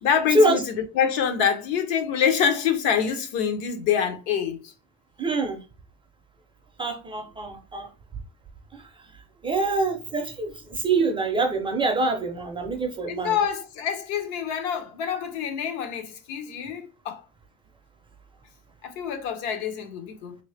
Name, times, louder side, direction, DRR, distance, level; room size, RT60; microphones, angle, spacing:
voice 1, 0.0-4.7 13.1-17.2 18.8-20.4, left 7 dB, 70° left, 0.9 m, -26 dB
voice 2, 5.2-5.6 6.8-7.9 9.4-13.4, right 2 dB, 15° right, 0.5 m, -24 dB
3.1 x 2.7 x 3.3 m
supercardioid pair, 135°, 34 cm